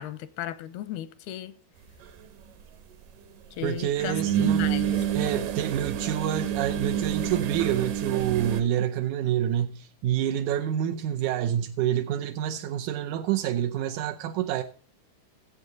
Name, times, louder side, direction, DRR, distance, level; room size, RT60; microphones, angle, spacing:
voice 1, 0.0-1.5 3.6-4.9, left 12 dB, 85° left, 2.7 m, -35 dB
sound 1, 2.0-2.1 4.0-8.6, right 9 dB, 65° right, 2.5 m, -28 dB
voice 2, 3.6-4.7 5.1-14.6, right 10 dB, 85° right, 1.7 m, -28 dB
16.0 x 7.9 x 3.9 m
omnidirectional pair, 4.5 m